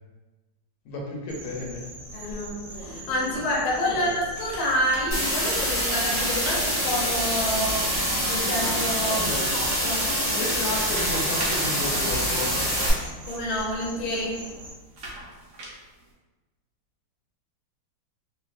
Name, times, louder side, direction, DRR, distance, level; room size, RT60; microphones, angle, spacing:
voice 1, 0.8-1.8 3.9-4.2 9.0-9.6 10.3-12.7, left 1 dB, 80° left, -2 dB, 1.5 m, -32 dB
sound 1, 1.3-14.7, equal, 45° right, 1.1 m, -41 dB
voice 2, 2.1-7.9 8.2-9.2 9.5-10.0 13.2-14.3, equal, 60° left, -4 dB, 1.1 m, -28 dB
sound 2, 4.4-7.3 8.0-13.5 14.1-16.1, right 1 dB, 80° right, 0.7 m, -40 dB
sound 3, 5.1-12.9, equal, 15° right, 0.7 m, -25 dB
3.1 x 2.8 x 2.4 m, 1.1 s
omnidirectional pair, 2.4 m